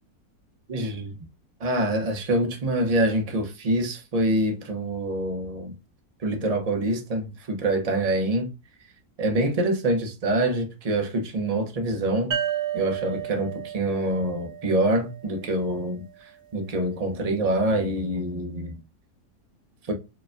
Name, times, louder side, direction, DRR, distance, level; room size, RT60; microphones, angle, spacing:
voice 1, 0.7-1.2 1.6-5.7 6.2-8.5 9.2-12.4 12.7-18.8 19.9-20.0, right 1 dB, 35° right, 0.6 m, -25 dB
sound 1, 12.3-15.8, right 10 dB, 80° right, 0.5 m, -32 dB
4.7 x 3.1 x 2.5 m
omnidirectional pair, 1.7 m